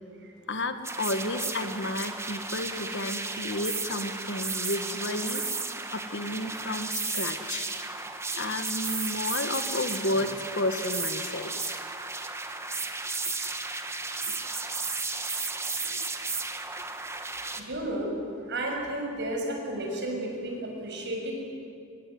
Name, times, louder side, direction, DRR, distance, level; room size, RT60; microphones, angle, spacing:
voice 1, 0.5-5.4 5.9-7.7 8.3-11.8 14.2-14.4 15.9-16.1, left 2 dB, 60° left, 9 dB, 1.7 m, -32 dB
sound 1, 0.8-17.6, right 3 dB, 15° right, 1.6 m, -34 dB
voice 2, 17.2-18.1 18.5-21.3, right 1 dB, 60° right, 1 dB, 6.7 m, -33 dB
24.0 x 22.5 x 9.7 m, 2.5 s
head